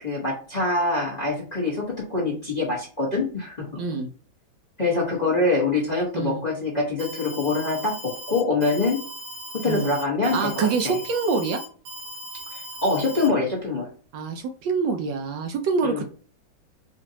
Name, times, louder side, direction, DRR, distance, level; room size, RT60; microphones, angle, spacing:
voice 1, 0.0-3.8 4.8-9.0 9.5-10.9 12.5-13.9 15.8-16.0, left 3 dB, 25° left, -3 dB, 1.0 m, -25 dB
voice 2, 3.8-4.1 6.1-6.4 9.7-9.9 10.3-11.6 14.1-16.0, right 5 dB, 70° right, 5 dB, 1.2 m, -25 dB
Alarm, 7.0-13.3, right 1 dB, 85° right, 2.0 m, -38 dB
5.1 x 2.4 x 2.8 m, 0.40 s
omnidirectional pair, 2.2 m